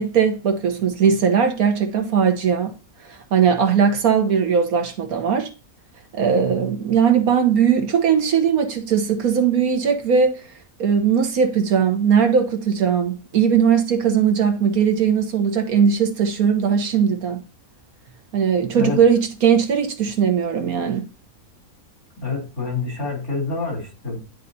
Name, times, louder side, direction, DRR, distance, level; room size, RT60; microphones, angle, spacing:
voice 1, 0.0-2.7 3.3-5.5 6.1-10.4 10.8-17.4 18.3-21.0, right 7 dB, 80° right, 1.6 m, -19 dB
voice 2, 22.2-24.2, left 4 dB, 80° left, 3.8 m, -27 dB
11.5 x 4.0 x 2.7 m
omnidirectional pair, 1.5 m